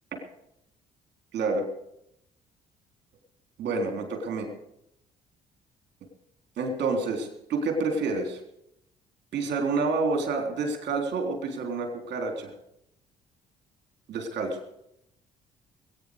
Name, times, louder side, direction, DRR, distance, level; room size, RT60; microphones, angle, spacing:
voice 1, 1.3-1.6 3.6-4.5 6.6-8.4 9.3-12.5 14.1-14.5, right 3 dB, 60° right, 4 dB, 3.7 m, -28 dB
20.5 x 9.4 x 6.6 m, 0.80 s
hypercardioid pair, 50°, 20 cm